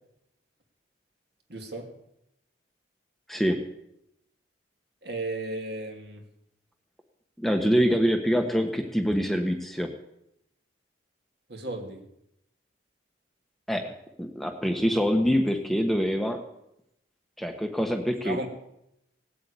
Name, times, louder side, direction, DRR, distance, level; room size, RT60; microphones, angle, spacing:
voice 1, 1.5-1.9 5.0-6.2 11.5-12.0 18.2-18.5, right 2 dB, 55° right, 3 dB, 2.7 m, -34 dB
voice 2, 7.4-9.9 13.7-13.9 14.2-16.4 17.4-18.5, equal, ahead, 4 dB, 1.1 m, -25 dB
18.0 x 8.5 x 8.4 m, 0.81 s
head